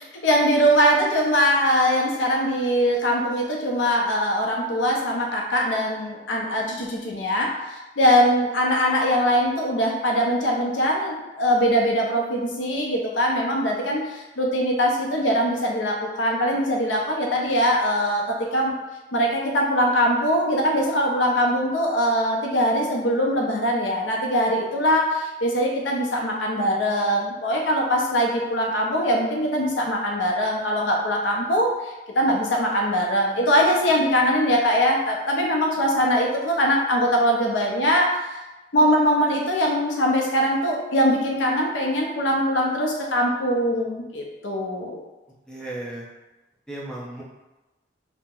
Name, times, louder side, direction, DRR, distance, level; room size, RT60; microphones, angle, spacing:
voice 1, 0.2-18.7 19.1-38.1 38.7-45.0, equal, 85° left, -1 dB, 0.6 m, -22 dB
voice 2, 45.5-46.1 46.7-47.2, right 1 dB, 5° left, -6 dB, 0.6 m, -34 dB
2.8 x 2.1 x 3.7 m, 1.1 s
head